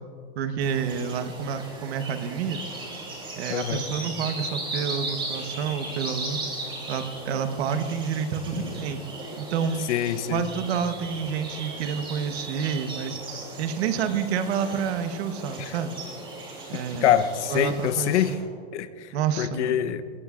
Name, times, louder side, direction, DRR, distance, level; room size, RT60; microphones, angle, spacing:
voice 1, 0.3-2.7 3.4-6.4 6.9-9.0 9.4-9.9 10.3-13.2 13.6-16.0 16.7-17.1 17.5-18.2 19.1-19.8, right 7 dB, 65° right, 9 dB, 1.2 m, -29 dB
sound 1, 0.6-18.4, right 2 dB, 15° right, 3.0 m, -37 dB
voice 2, 3.5-3.8 9.9-10.4 15.6-15.7 17.0-18.3 18.7-20.0, left 10 dB, 75° left, 12 dB, 1.0 m, -25 dB
21.5 x 16.5 x 2.5 m, 2.3 s
supercardioid pair, 160°, 35 cm